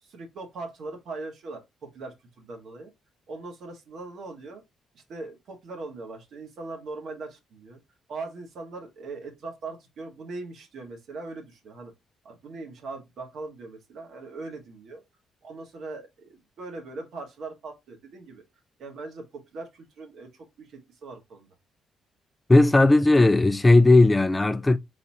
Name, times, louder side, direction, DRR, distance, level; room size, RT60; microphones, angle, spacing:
voice 1, 0.0-2.9 3.3-4.6 4.9-7.8 8.1-11.9 12.2-15.0 15.4-18.4 18.8-21.5, right 3 dB, 70° right, 1.4 m, -40 dB
voice 2, 22.5-24.8, left 2 dB, 15° left, 0.3 m, -17 dB
4.1 x 4.1 x 2.8 m
cardioid pair, 90°, 0 cm